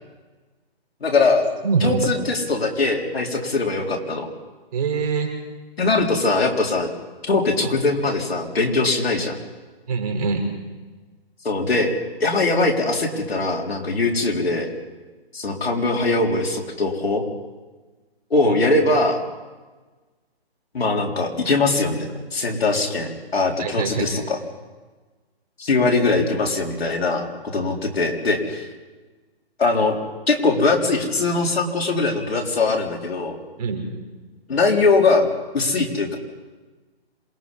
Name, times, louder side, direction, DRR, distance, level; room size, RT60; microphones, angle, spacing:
voice 1, 1.0-1.5 1.8-4.3 5.8-6.9 7.2-9.4 11.4-11.9 12.2-14.7 15.3-17.2 18.3-19.2 20.7-24.4 25.6-27.2 27.5-28.7 29.6-30.0 30.3-33.4 34.5-35.3 35.5-36.2, left 3 dB, 75° left, 1 dB, 4.2 m, -21 dB
voice 2, 1.6-2.1 4.7-5.3 9.9-10.4 18.4-18.6 23.6-24.1 27.5-27.6 33.6-33.9, right 5 dB, 40° right, 3 dB, 5.0 m, -23 dB
27.0 x 20.5 x 5.6 m, 1.3 s
hypercardioid pair, 150°, 31 cm